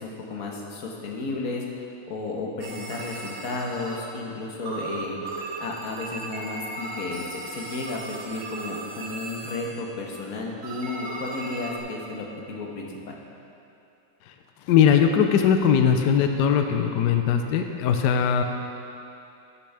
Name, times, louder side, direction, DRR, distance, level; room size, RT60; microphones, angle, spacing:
voice 1, 0.0-1.6 2.1-5.3 5.6-13.1, left 3 dB, 50° left, -1 dB, 1.4 m, -33 dB
sound 1, 2.6-4.4 4.6-10.2 10.6-11.8, right 3 dB, 90° right, 1.7 m, -37 dB
voice 2, 14.7-18.4, left 8 dB, 70° left, 5 dB, 1.1 m, -20 dB
12.0 x 8.4 x 3.4 m, 2.8 s
omnidirectional pair, 2.2 m